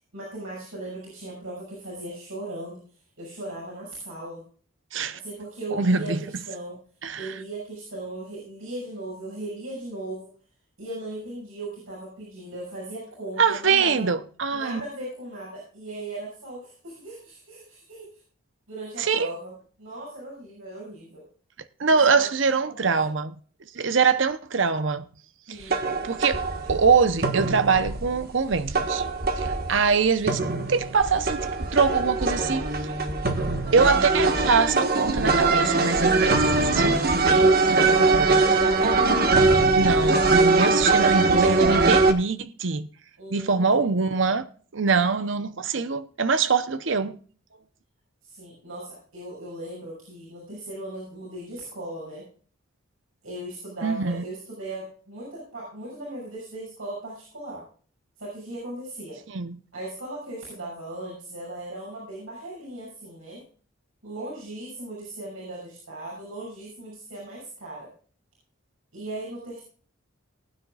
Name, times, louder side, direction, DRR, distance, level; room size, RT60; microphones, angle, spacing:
voice 1, 0.0-2.8 3.2-4.4 5.1-6.1 6.5-6.8 7.2-10.3 10.8-14.1 14.5-18.2 18.7-19.5 19.8-21.2 21.9-22.3 22.8-22.9 25.5-25.9 37.9-38.9 43.2-43.7 48.2-52.3 53.2-57.6 58.2-59.2 59.7-63.4 64.0-67.9 68.9-69.6, right 1 dB, 90° right, 6.6 m, -38 dB
voice 2, 5.7-6.2 7.0-7.3 13.4-14.8 19.0-19.3 21.8-23.3 23.7-25.1 25.5-29.0 29.4-30.4 30.7-32.6 33.7-38.4 39.7-42.9 43.3-44.4 44.7-47.2 53.8-54.2 59.3-59.6, right 5 dB, 65° right, 0.8 m, -24 dB
sound 1, 25.7-42.1, right 3 dB, 45° right, 1.4 m, -22 dB
20.0 x 9.5 x 2.4 m
head